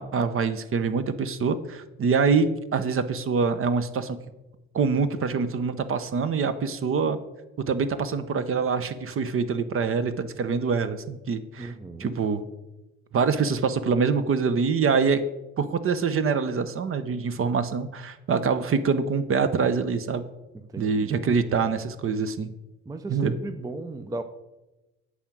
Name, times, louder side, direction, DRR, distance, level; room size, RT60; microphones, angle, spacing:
voice 1, 0.0-4.2 4.7-7.2 7.7-11.7 12.0-12.4 13.1-15.2 15.6-20.2 20.8-22.5 23.1-23.3, right 5 dB, 35° right, 0.8 m, -25 dB
voice 2, 11.6-12.1 20.5-21.2 22.9-24.2, right 2 dB, 10° right, 0.5 m, -36 dB
8.6 x 4.9 x 6.1 m
hypercardioid pair, 55°, 35 cm